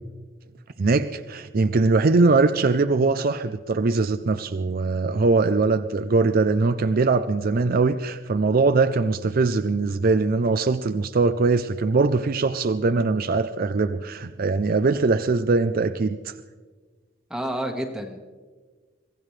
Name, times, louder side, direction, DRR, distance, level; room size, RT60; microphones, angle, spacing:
voice 1, 0.8-16.3, right 3 dB, 50° right, 10 dB, 0.5 m, -21 dB
voice 2, 17.3-18.2, right 1 dB, 5° right, 2 dB, 1.4 m, -29 dB
24.5 x 16.0 x 3.3 m, 1.4 s
head